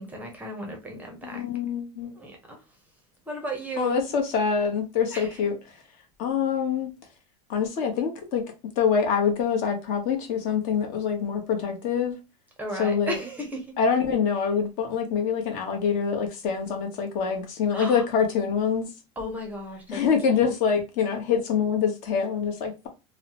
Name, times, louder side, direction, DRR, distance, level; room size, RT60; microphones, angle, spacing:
voice 1, 0.0-1.4 2.1-2.6 3.3-4.1 5.1-5.5 12.6-13.7 17.7-18.0 19.2-20.5, right 1 dB, 10° right, 0.6 m, -35 dB
voice 2, 1.2-2.1 3.8-5.6 6.2-6.9 7.5-8.4 8.8-12.2 12.8-13.2 13.8-18.9 19.9-22.9, left 6 dB, 50° left, 0.9 m, -25 dB
3.1 x 2.0 x 2.8 m
supercardioid pair, 150°, 17 cm